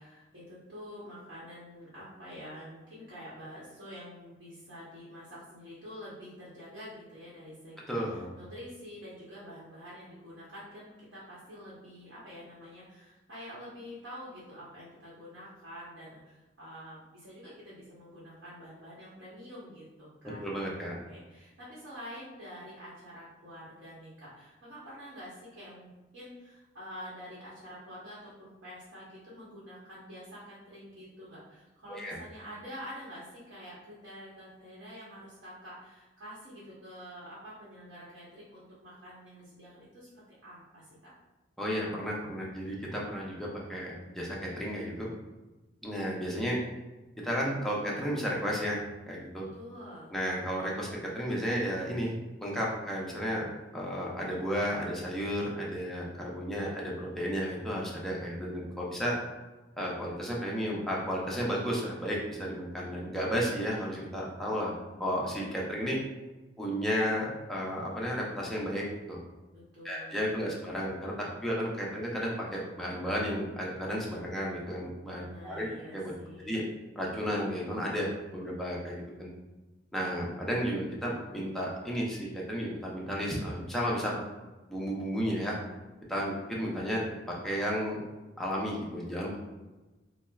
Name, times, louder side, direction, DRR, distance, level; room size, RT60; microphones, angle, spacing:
voice 1, 0.0-20.4 21.1-40.1 40.4-41.1 49.5-50.1 69.5-70.1 70.4-70.7 75.2-76.6, equal, 90° right, -8 dB, 1.0 m, -47 dB
voice 2, 7.9-8.3 20.4-20.9 31.9-32.2 41.6-45.1 45.8-46.6 47.2-48.8 49.1-49.4 50.1-50.9 51.1-52.1 52.4-53.5 53.7-59.1 59.8-64.7 65.0-66.0 66.6-69.2 69.8-71.1 71.4-75.7 75.9-76.1 76.5-76.6 77.0-78.1 78.3-79.3 79.9-84.2 84.7-85.5 86.1-87.0 87.4-88.0 88.4-89.4, equal, ahead, -4 dB, 0.6 m, -33 dB
4.2 x 2.1 x 2.3 m, 1.1 s
head